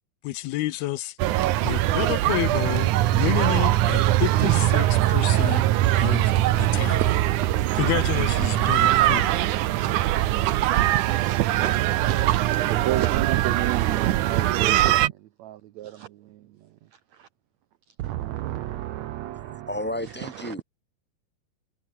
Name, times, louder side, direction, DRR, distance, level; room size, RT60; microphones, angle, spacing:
voice 1, 0.2-1.2 1.6-5.6 5.9-7.0 7.8-9.5, left 16 dB, 90° left, 2.9 m, -29 dB
sound 1, 1.2-15.1, right 14 dB, 70° right, 2.1 m, -22 dB
voice 2, 10.0-12.1 12.4-17.3 18.0-19.7 20.2-20.6, right 14 dB, 90° right, 1.5 m, -33 dB
voice 3, 19.4-20.6, left 1 dB, 5° left, 3.3 m, -32 dB
omnidirectional pair, 4.3 m